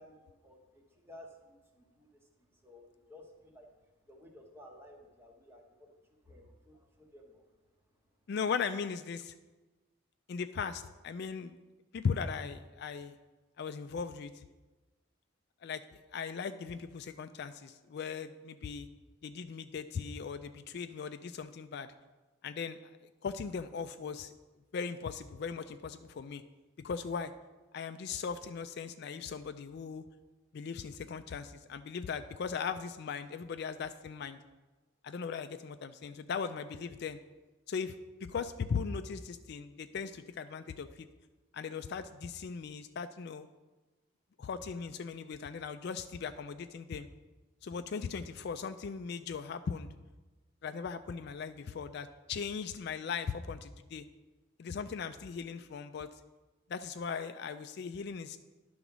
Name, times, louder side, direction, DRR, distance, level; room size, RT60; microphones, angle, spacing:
voice 1, 0.0-3.7 4.1-5.9 6.2-7.5, left 1 dB, 10° right, 2 dB, 1.0 m, -55 dB
voice 2, 8.3-9.3 10.3-11.6 11.9-13.2 13.6-14.4 15.6-18.9 19.2-21.9 22.4-22.8 23.2-24.3 24.7-26.4 26.8-27.3 27.7-30.0 30.5-34.4 35.0-37.2 37.7-37.9 38.2-41.1 41.5-43.5 44.4-47.1 47.6-49.9 50.6-54.0 54.6-56.1 56.7-58.4, left 6 dB, 55° left, 10 dB, 0.3 m, -38 dB
11.0 x 4.0 x 6.1 m, 1.2 s
head